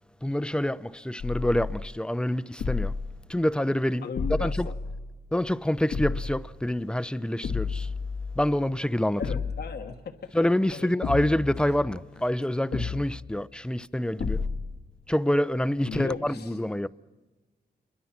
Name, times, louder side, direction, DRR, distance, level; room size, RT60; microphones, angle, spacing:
voice 1, 0.2-2.9 3.3-4.1 4.4-4.7 5.3-7.9 8.4-9.4 10.3-14.4 15.1-16.9, left 1 dB, 5° left, 0.7 m, -27 dB
sound 1, 1.2-2.0 2.6-3.2 4.2-5.2 5.9-6.5 7.4-8.5 9.2-9.8 11.0-12.1 12.7-13.4 14.2-14.8, left 4 dB, 90° left, 1.8 m, -32 dB
voice 2, 4.0-4.7 9.2-10.4 10.7-10.9 15.8-16.6, left 6 dB, 75° left, 1.4 m, -37 dB
28.5 x 22.5 x 5.9 m
cardioid pair, 65°, 17 cm